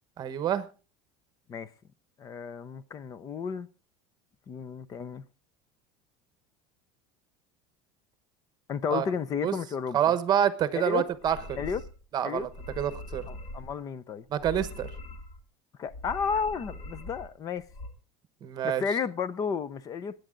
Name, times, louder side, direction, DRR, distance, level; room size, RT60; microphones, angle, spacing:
voice 1, 0.2-0.7 8.9-9.0 9.4-9.5 9.9-11.6 12.1-12.5 12.8-13.3 14.3-14.9 18.4-18.8, right 10 dB, 30° right, 1.1 m, -27 dB
voice 2, 2.2-3.7 4.5-5.2 8.7-10.0 10.7-11.0 11.6-11.8 12.2-12.5 13.3-14.2 15.8-17.7 18.6-20.1, left 6 dB, 25° left, 0.6 m, -32 dB
sound 1, 11.1-12.0 12.4-13.7 14.3-15.4 15.9-17.3 17.6-17.9, left 2 dB, 45° left, 2.7 m, -42 dB
21.5 x 9.1 x 3.8 m
cardioid pair, 160°, 13 cm